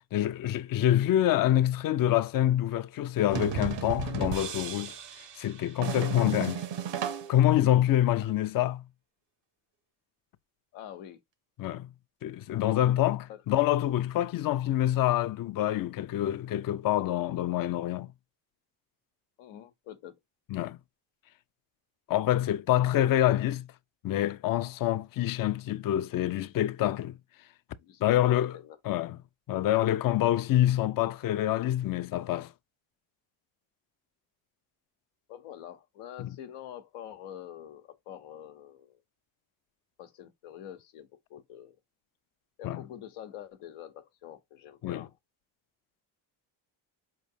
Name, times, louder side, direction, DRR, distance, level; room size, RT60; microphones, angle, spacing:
voice 1, 0.1-5.0 5.4-6.6 7.3-8.8 11.6-11.9 12.2-18.1 20.5-20.8 22.1-23.7 24.0-27.2 28.0-28.6 28.9-29.2 29.5-32.5 36.2-36.3 42.6-42.8 44.8-45.1, left 12 dB, 45° left, 0.5 m, -26 dB
sound 1, 3.3-7.4, right 9 dB, 60° right, 0.8 m, -34 dB
voice 2, 10.7-11.2 13.3-13.4 19.4-20.2 27.8-28.0 28.3-28.8 30.2-30.3 35.3-39.0 40.0-41.8 42.6-45.1, left 10 dB, 85° left, 0.9 m, -46 dB
4.6 x 3.2 x 2.6 m
supercardioid pair, 65°, 49 cm